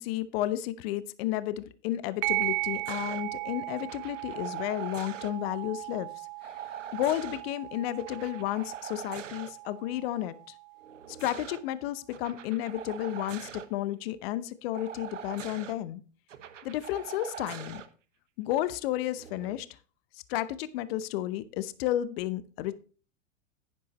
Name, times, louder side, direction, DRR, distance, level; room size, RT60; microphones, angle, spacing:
voice 1, 0.0-6.1 6.9-10.3 11.2-16.0 16.6-17.8 18.4-19.7 20.3-22.8, left 13 dB, 55° left, 15 dB, 0.8 m, -32 dB
sound 1, 2.2-11.2, right 24 dB, 35° right, 0.6 m, -37 dB
sound 2, 2.8-3.2 3.8-5.3 6.4-7.4 7.9-9.5 10.8-11.6 12.1-13.7 14.7-15.7 16.3-17.9 19.1-19.5, right 9 dB, 80° right, 1.1 m, -43 dB
10.5 x 10.0 x 3.1 m, 0.37 s
hypercardioid pair, 95°, 37 cm